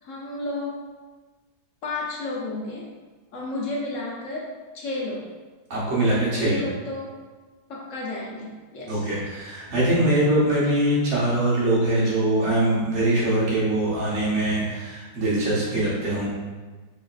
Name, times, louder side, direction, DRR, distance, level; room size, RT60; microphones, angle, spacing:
voice 1, 0.0-0.9 1.8-2.9 3.3-5.3 6.1-7.2 7.7-9.1, left 2 dB, 60° left, -3 dB, 1.0 m, -32 dB
voice 2, 5.7-6.6 8.9-16.3, right 1 dB, 45° right, -8 dB, 1.4 m, -22 dB
4.8 x 3.2 x 2.5 m, 1.3 s
omnidirectional pair, 1.7 m